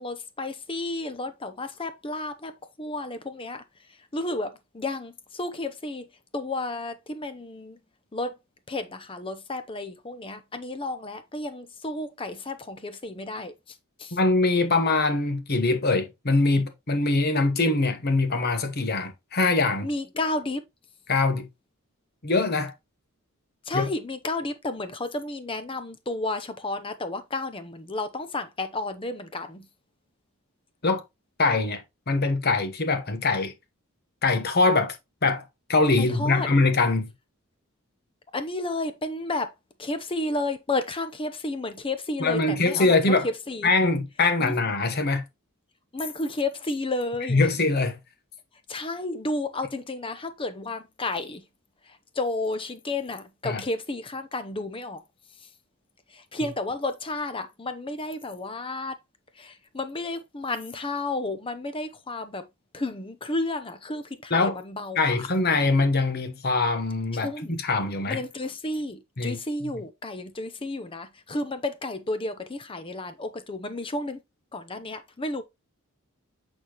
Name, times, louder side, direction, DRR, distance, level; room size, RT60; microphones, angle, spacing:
voice 1, 0.0-3.6 4.1-6.1 6.3-7.8 8.1-8.3 8.7-14.2 19.8-20.6 23.7-29.7 36.0-36.5 38.3-39.5 39.8-43.7 44.4-44.5 45.9-47.5 48.7-51.4 51.9-55.0 56.1-59.0 59.4-62.5 62.7-65.0 67.1-67.6 68.1-74.2 74.5-75.4, left 2 dB, 25° left, 0.7 m, -32 dB
voice 2, 14.1-19.9 21.1-21.5 22.2-22.7 23.7-23.8 30.8-31.0 31.4-33.5 34.2-35.0 35.2-35.4 35.7-37.1 42.2-43.3 43.6-45.2 47.3-48.0 53.4-53.6 64.3-64.6 65.0-68.2 69.2-69.7, left 3 dB, 45° left, 1.1 m, -23 dB
8.3 x 4.2 x 3.0 m
head